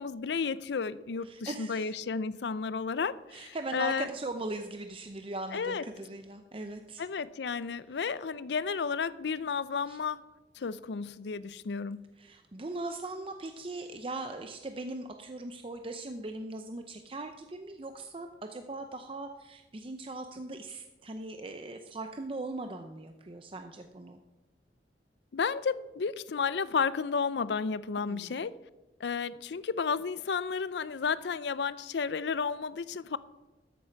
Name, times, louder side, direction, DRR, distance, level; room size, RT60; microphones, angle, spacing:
voice 1, 0.0-4.1 5.5-5.8 7.0-10.2 10.6-12.1 25.3-28.5 29.0-33.2, left 5 dB, 75° left, 0.5 m, -32 dB
voice 2, 1.2-1.9 3.3-7.0 9.9-10.0 12.2-24.2 28.1-28.4, right 2 dB, 30° right, 0.6 m, -40 dB
13.5 x 7.6 x 5.8 m
head